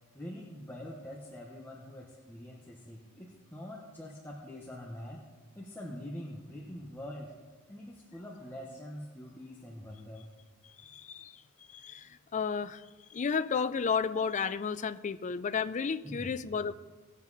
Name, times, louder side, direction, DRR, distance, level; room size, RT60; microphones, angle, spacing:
voice 1, 0.1-5.2 5.5-7.3 7.7-10.3 16.0-16.3, left 1 dB, 10° left, -3 dB, 1.2 m, -44 dB
voice 2, 10.8-12.8 13.1-16.7, left 6 dB, 35° left, 13 dB, 0.4 m, -33 dB
19.0 x 7.3 x 4.1 m, 1.3 s
head